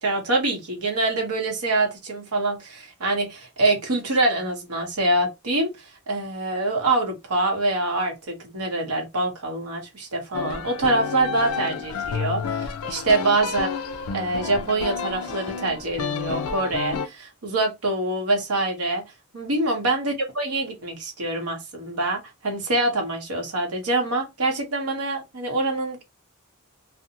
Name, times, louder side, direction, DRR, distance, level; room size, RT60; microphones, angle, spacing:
voice 1, 0.0-5.7 6.1-13.7 14.1-19.0 19.3-26.0, right 2 dB, 90° right, 0.9 m, -25 dB
sound 1, 10.3-17.1, left 6 dB, 70° left, 0.4 m, -30 dB
2.5 x 2.0 x 2.8 m
head